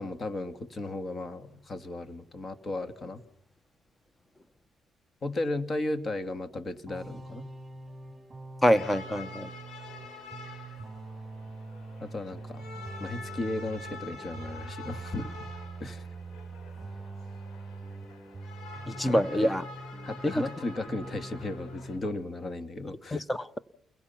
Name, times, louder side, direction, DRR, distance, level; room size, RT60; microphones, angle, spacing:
voice 1, 0.0-3.2 5.2-7.5 12.0-12.7 13.0-15.3 15.8-16.1 19.0-19.5 20.0-23.2, left 2 dB, 40° left, 10 dB, 2.3 m, -35 dB
sound 1, 6.9-20.6 20.9-22.1, right 3 dB, 20° right, 6.7 m, -43 dB
voice 2, 8.6-9.5 18.9-19.6 20.2-20.4 23.1-23.6, equal, 15° left, 16 dB, 1.1 m, -26 dB
sound 2, 8.7-22.0, left 4 dB, 80° left, 6.5 m, -47 dB
30.0 x 22.0 x 5.9 m, 0.65 s
cardioid pair, 90°, 0 cm